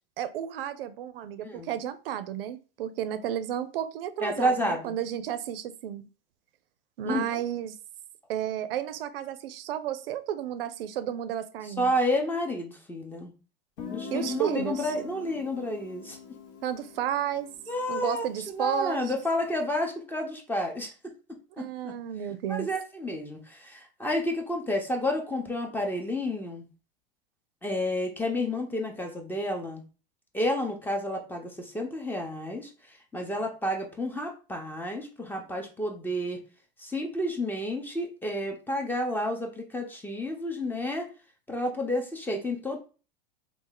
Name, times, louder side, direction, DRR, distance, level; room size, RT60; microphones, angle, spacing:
voice 1, 0.2-6.0 7.0-7.8 8.3-11.9 14.1-14.9 16.6-17.5 17.9-19.1 21.6-22.7, right 10 dB, 75° right, 0.5 m, -32 dB
voice 2, 4.2-5.0 7.0-7.4 11.6-13.3 13.9-16.2 17.7-21.1 21.6-21.9 22.5-26.6 27.6-29.8 30.3-32.7 33.1-36.4 36.8-41.1 41.5-42.8, left 1 dB, 5° left, 0.7 m, -30 dB
Guitar, 13.8-19.3, left 6 dB, 65° left, 1.0 m, -43 dB
3.1 x 2.4 x 3.7 m
hypercardioid pair, 105°, 29 cm